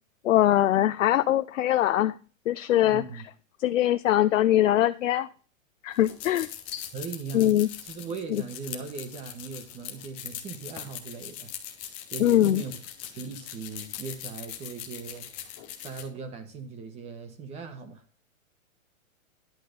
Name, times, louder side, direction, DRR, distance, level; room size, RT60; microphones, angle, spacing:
voice 1, 0.2-2.2 2.5-3.0 3.6-5.3 5.8-6.9 7.3-7.7 8.3-8.4 12.2-12.6, left 12 dB, 65° left, 0.7 m, -22 dB
voice 2, 2.8-3.2 6.9-7.5 7.8-11.5 12.1-12.8 13.1-15.3 15.8-18.0, right 5 dB, 15° right, 1.2 m, -39 dB
sound 1, 5.9-16.0, left 11 dB, 10° left, 0.4 m, -41 dB
10.5 x 5.1 x 6.6 m
hypercardioid pair, 155°, 40 cm